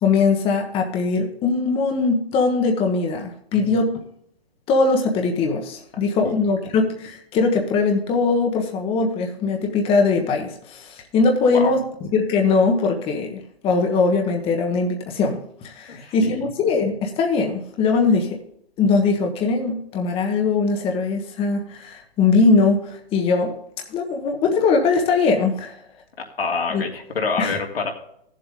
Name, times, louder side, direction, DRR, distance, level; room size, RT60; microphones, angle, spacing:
voice 1, 0.0-4.0 4.7-11.8 12.1-18.4 18.8-23.5 23.9-25.7 26.7-26.8 27.4-27.6, left 4 dB, 20° left, 3 dB, 1.2 m, -21 dB
voice 2, 15.9-16.4 26.2-27.9, left 4 dB, 75° left, 1 dB, 2.8 m, -27 dB
15.5 x 7.5 x 3.7 m, 0.72 s
hypercardioid pair, 135°, 30 cm